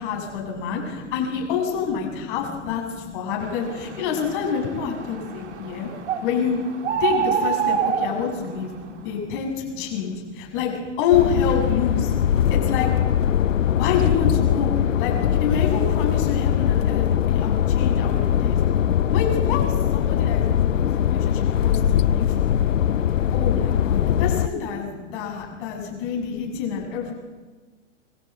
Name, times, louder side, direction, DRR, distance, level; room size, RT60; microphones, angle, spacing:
voice 1, 0.0-5.9 6.2-6.6 7.0-8.7 9.0-12.1 12.5-12.9 13.8-18.6 19.1-22.3 23.3-27.1, left 7 dB, 40° left, 1 dB, 7.4 m, -27 dB
sound 1, 3.4-9.0, right 7 dB, 60° right, 3.3 m, -28 dB
voice 2, 5.3-6.1 8.8-9.2 10.0-10.3 24.8-26.1 26.4-26.5 27.0-27.1, left 6 dB, 25° left, -3 dB, 3.4 m, -43 dB
sound 2, 11.1-24.5, left 9 dB, 75° left, 0.8 m, -21 dB
24.5 x 15.0 x 8.3 m, 1.3 s
hypercardioid pair, 130°, 38 cm